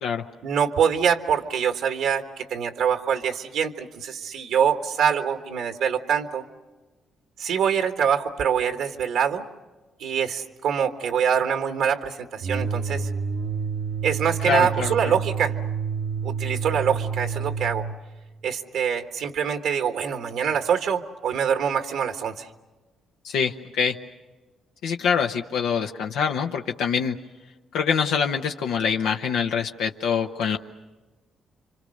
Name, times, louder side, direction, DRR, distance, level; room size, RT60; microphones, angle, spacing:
voice 1, 0.4-6.4 7.4-9.4 10.0-13.1 14.0-15.5 16.2-17.9 18.4-22.5, right 7 dB, 80° right, 6 dB, 1.5 m, -24 dB
sound 1, 12.4-18.0, right 6 dB, 65° right, 0.9 m, -29 dB
voice 2, 14.5-14.9 23.2-24.0 24.8-27.1 27.7-30.6, left 6 dB, 90° left, 3 dB, 0.9 m, -25 dB
28.5 x 25.5 x 6.5 m, 1.2 s
cardioid pair, 90°, 0 cm